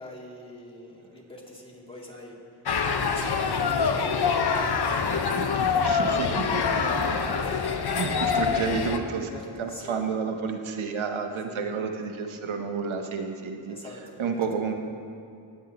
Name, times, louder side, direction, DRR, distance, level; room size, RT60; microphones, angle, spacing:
voice 1, 0.0-5.9 6.6-6.8 7.2-10.2 11.5-11.8 13.7-14.7, left 1 dB, 10° left, -4 dB, 2.6 m, -45 dB
sound 1, 2.7-9.0, left 5 dB, 55° left, 0.8 m, -25 dB
voice 2, 5.3-7.0 7.9-9.3 9.6-13.8 14.2-14.7, right 5 dB, 90° right, 5 dB, 0.9 m, -31 dB
18.5 x 8.0 x 2.9 m, 2.4 s
cardioid pair, 50°, 47 cm